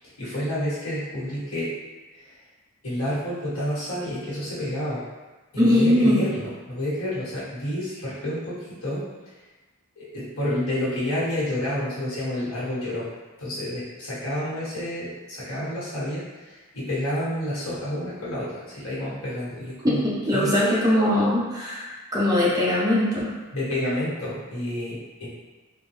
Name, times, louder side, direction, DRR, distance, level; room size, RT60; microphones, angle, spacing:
voice 1, 0.0-1.7 2.1-2.3 2.8-5.0 5.5-9.0 10.0-13.1 13.4-20.0 20.3-20.8 23.5-25.3, left 1 dB, 75° left, -9 dB, 1.4 m, -29 dB
voice 2, 5.6-6.2 19.8-23.3, left 1 dB, 15° right, -8 dB, 0.9 m, -21 dB
3.6 x 2.3 x 3.1 m, 1.2 s
head